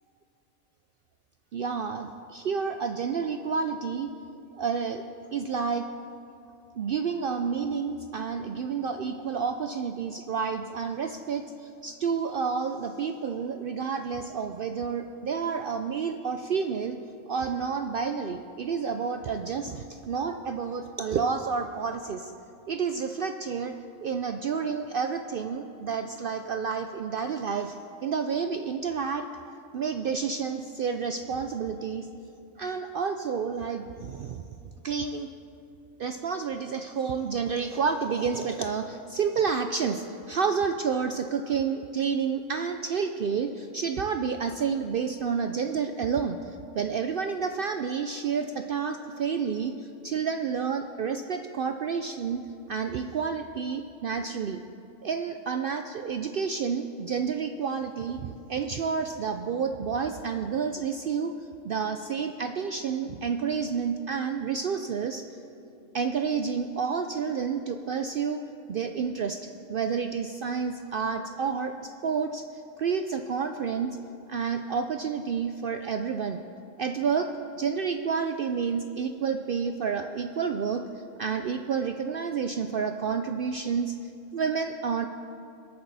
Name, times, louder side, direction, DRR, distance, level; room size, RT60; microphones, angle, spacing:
voice 1, 1.5-4.1 4.6-5.0 5.3-5.9 6.8-17.0 17.3-22.3 22.7-27.8 28.0-29.3 29.7-32.1 32.6-34.4 34.8-35.3 36.0-46.4 46.7-54.6 55.0-61.3 61.6-65.3 65.9-68.4 68.7-72.4 72.8-74.0 74.3-76.4 76.8-77.3 77.6-80.8 81.2-84.0 84.3-85.1, right 6 dB, 75° right, 7 dB, 0.5 m, -30 dB
23.0 x 8.8 x 4.0 m, 2.6 s
omnidirectional pair, 1.5 m